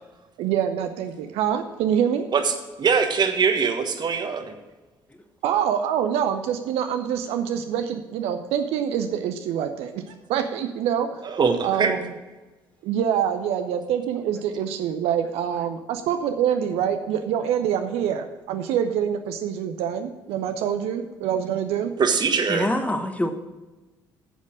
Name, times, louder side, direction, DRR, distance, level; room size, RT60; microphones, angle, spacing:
voice 1, 0.4-2.2 5.4-11.3 11.6-12.1 12.8-21.9, right 9 dB, 60° right, 7 dB, 0.7 m, -25 dB
voice 2, 2.3-4.5 11.2-11.9 22.0-22.7, right 5 dB, 40° right, 6 dB, 1.3 m, -22 dB
voice 3, 22.5-23.3, left 1 dB, 10° left, 6 dB, 1.3 m, -25 dB
9.0 x 7.4 x 6.1 m, 1.2 s
figure-of-eight pair, 50°, 12 cm